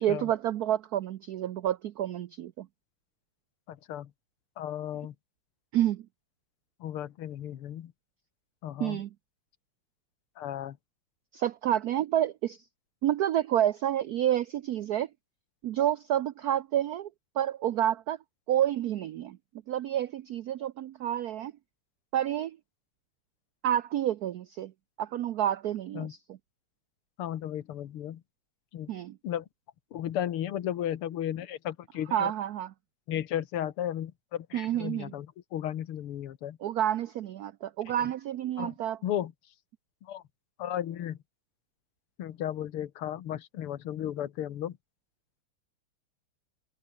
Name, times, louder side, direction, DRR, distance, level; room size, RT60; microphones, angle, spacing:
voice 1, 0.0-2.7 5.7-6.0 8.8-9.1 11.3-12.6 13.0-15.1 15.6-17.1 17.4-18.2 18.5-19.4 19.7-21.5 22.1-22.6 23.6-24.7 25.0-26.4 28.9-29.2 32.1-32.7 34.5-35.1 36.6-39.0, right 11 dB, 85° right, 0.8 m, -29 dB
voice 2, 3.7-4.1 4.6-5.1 6.8-7.9 8.6-9.0 10.4-10.8 25.9-26.1 27.2-28.2 28.7-28.9 29.2-29.5 29.9-32.3 33.1-36.6 38.6-38.7 39.0-39.3 40.1-40.2 40.6-41.2 42.2-44.8, left 11 dB, 85° left, 2.1 m, -34 dB
omnidirectional pair, 2.4 m